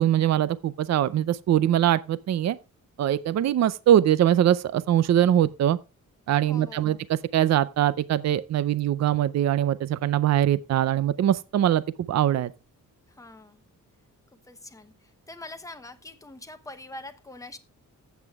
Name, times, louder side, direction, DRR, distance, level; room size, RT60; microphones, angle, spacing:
voice 1, 0.0-2.6 3.0-5.8 6.3-11.8 12.1-12.5, right 11 dB, 55° right, 0.5 m, -22 dB
voice 2, 6.4-7.0 13.1-13.6 14.3-17.6, left 2 dB, 10° left, 0.9 m, -44 dB
14.5 x 8.2 x 2.4 m
wide cardioid pair, 165°, 33 cm